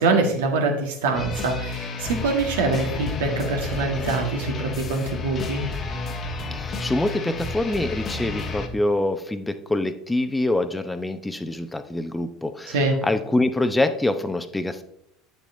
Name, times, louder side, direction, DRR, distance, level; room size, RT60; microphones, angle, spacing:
voice 1, 0.0-5.6 12.7-13.0, right 3 dB, 70° right, 2 dB, 1.6 m, -24 dB
sound 1, 1.1-8.7, left 3 dB, 35° left, 1.2 m, -31 dB
voice 2, 6.5-14.8, left 2 dB, 10° left, 10 dB, 0.7 m, -25 dB
9.7 x 7.1 x 2.7 m, 0.74 s
figure-of-eight pair, 70°, 0 cm